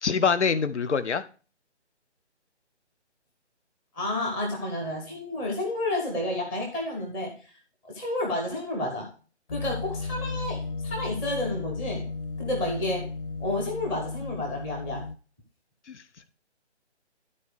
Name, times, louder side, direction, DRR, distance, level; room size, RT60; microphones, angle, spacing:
voice 1, 0.0-1.2 15.9-16.0, left 5 dB, 75° left, 0.9 m, -25 dB
voice 2, 3.9-7.3 7.9-9.1 9.5-12.1 12.4-13.1 13.4-15.0, left 1 dB, 5° left, 0.7 m, -30 dB
sound 1, 9.5-15.2, left 3 dB, 50° left, 0.6 m, -34 dB
12.0 x 4.3 x 4.7 m
figure-of-eight pair, 160°, 35 cm